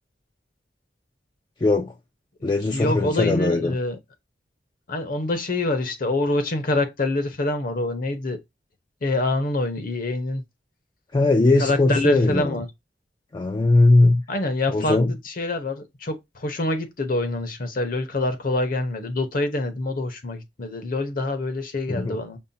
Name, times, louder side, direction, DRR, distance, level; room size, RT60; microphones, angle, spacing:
voice 1, 1.6-1.9 2.4-3.8 11.1-12.6 13.3-14.2 14.7-15.1 21.9-22.2, left 2 dB, 25° left, 0.3 m, -19 dB
voice 2, 2.7-4.0 4.9-8.4 9.0-10.4 11.6-12.7 14.3-15.0 15.2-22.4, left 2 dB, 50° left, 0.8 m, -25 dB
5.4 x 2.1 x 2.6 m
head